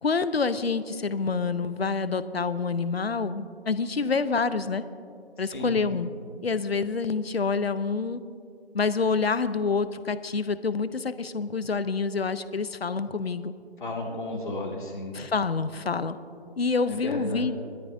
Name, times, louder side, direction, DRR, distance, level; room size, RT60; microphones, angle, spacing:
voice 1, 0.0-4.8 5.4-6.1 6.4-8.2 8.7-13.5 15.1-16.2 16.6-17.5, left 4 dB, 70° left, 14 dB, 0.7 m, -27 dB
voice 2, 13.8-15.1 16.9-17.5, left 2 dB, 50° left, -1 dB, 2.1 m, -33 dB
20.0 x 13.0 x 2.7 m, 2.4 s
figure-of-eight pair, 155°, 32 cm